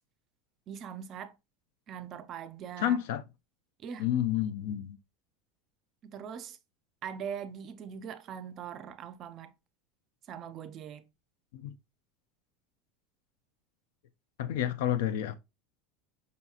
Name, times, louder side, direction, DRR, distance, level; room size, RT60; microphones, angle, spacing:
voice 1, 0.7-1.4 1.9-3.0 3.8-4.1 6.0-6.6 7.0-9.5 10.3-11.0, right 8 dB, 35° right, 0.4 m, -41 dB
voice 2, 2.8-3.2 4.0-5.0 11.5-11.8 14.4-15.3, left 11 dB, 75° left, 0.5 m, -30 dB
5.2 x 2.8 x 2.3 m
supercardioid pair, 150°, 0 cm